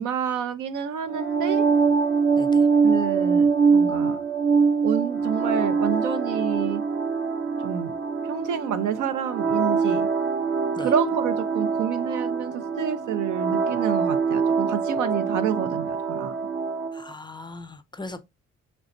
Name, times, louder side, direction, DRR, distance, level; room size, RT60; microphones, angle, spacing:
voice 1, 0.0-1.7 2.8-4.2 4.8-6.8 7.6-7.9 8.3-10.1 10.8-16.4, right 8 dB, 80° right, 0.6 m, -28 dB
sound 1, 1.1-17.0, right 5 dB, 40° right, 0.8 m, -24 dB
voice 2, 2.4-2.7 10.8-10.9 16.9-18.2, left 2 dB, 15° left, 0.3 m, -38 dB
3.9 x 3.4 x 2.5 m
cardioid pair, 90°, 30 cm